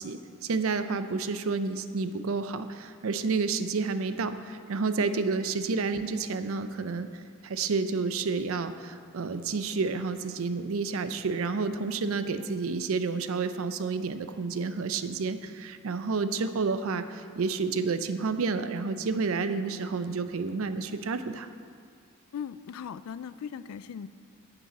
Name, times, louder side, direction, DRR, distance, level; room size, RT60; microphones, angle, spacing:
voice 1, 0.0-21.5, right 4 dB, 80° right, 11 dB, 0.5 m, -30 dB
voice 2, 22.3-24.1, left 7 dB, 90° left, 15 dB, 0.3 m, -38 dB
11.5 x 6.8 x 4.1 m, 2.2 s
head